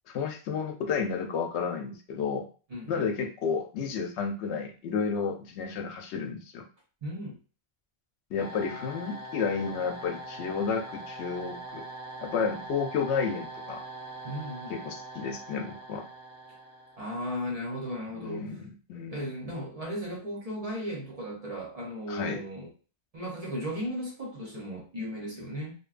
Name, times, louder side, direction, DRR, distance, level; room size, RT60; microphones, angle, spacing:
voice 1, 0.1-2.5 2.9-6.6 8.3-11.8 12.2-13.8 14.7-16.0 18.1-19.2 22.1-22.4, left 5 dB, 90° left, 4 dB, 0.9 m, -31 dB
voice 2, 2.7-3.1 7.0-7.4 14.2-14.7 17.0-18.5 19.1-22.7 23.1-25.7, equal, 40° right, -2 dB, 0.7 m, -36 dB
sound 1, 8.4-17.3, right 2 dB, 20° left, 0.8 m, -42 dB
2.8 x 2.2 x 2.4 m, 0.36 s
omnidirectional pair, 1.1 m